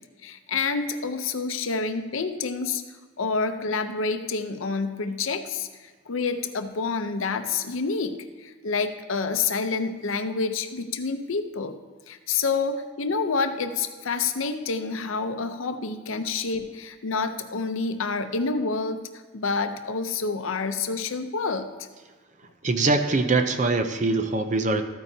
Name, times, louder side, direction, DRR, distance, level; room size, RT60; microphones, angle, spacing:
voice 1, 0.2-2.8 3.2-11.8 12.1-19.0 19.3-21.7, left 4 dB, 85° left, 8 dB, 0.7 m, -28 dB
voice 2, 22.6-24.8, right 3 dB, 35° right, 7 dB, 0.6 m, -23 dB
13.5 x 9.2 x 2.8 m, 1.4 s
head